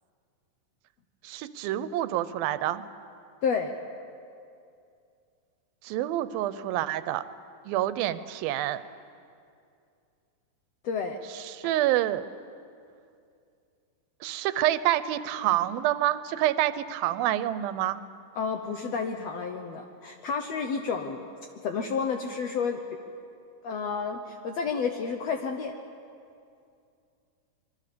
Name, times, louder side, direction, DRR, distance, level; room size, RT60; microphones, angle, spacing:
voice 1, 1.2-2.8 5.8-7.2 7.7-8.8 11.4-12.3 14.2-18.0, right 13 dB, 90° right, 14 dB, 2.6 m, -27 dB
voice 2, 3.4-3.7 10.8-11.2 11.6-11.7 18.3-21.3 21.6-22.8 23.6-25.7, left 5 dB, 70° left, 5 dB, 1.6 m, -30 dB
25.0 x 22.5 x 6.8 m, 2.4 s
omnidirectional pair, 4.1 m